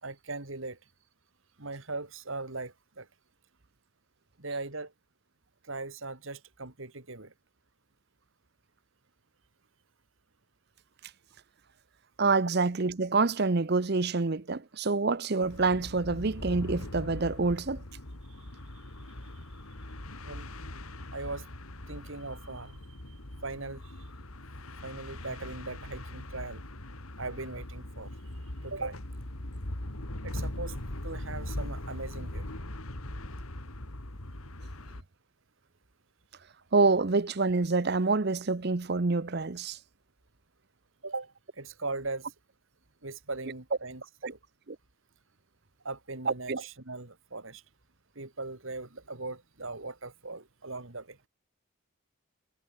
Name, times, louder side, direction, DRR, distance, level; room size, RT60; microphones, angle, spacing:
voice 1, 0.0-0.8 1.6-3.1 4.4-4.9 5.6-7.3 20.2-20.5 21.1-21.5 21.9-23.1 23.4-23.9 24.8-26.6 27.2-28.1 28.6-29.0 30.2-30.8 31.0-32.5 41.0-42.3 43.0-44.4 45.8-47.6 48.2-51.2, right 3 dB, 65° right, 2.6 m, -39 dB
voice 2, 12.2-17.8 36.7-39.8 44.2-44.3 44.7-44.8 46.3-46.6, right 3 dB, 50° right, 0.7 m, -27 dB
sound 1, 15.4-35.0, left 1 dB, 85° left, 3.2 m, -40 dB
head